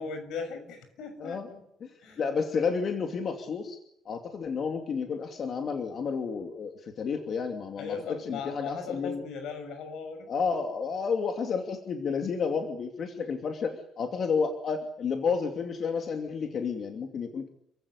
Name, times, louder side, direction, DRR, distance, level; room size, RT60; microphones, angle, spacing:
voice 1, 0.0-1.6 2.0-2.2 7.8-10.3, left 5 dB, 75° left, 9 dB, 6.7 m, -38 dB
voice 2, 1.8-3.8 4.0-9.2 10.3-17.5, left 5 dB, 45° left, 4 dB, 2.7 m, -31 dB
28.5 x 16.0 x 9.8 m, 0.75 s
cardioid pair, 145°, 0 cm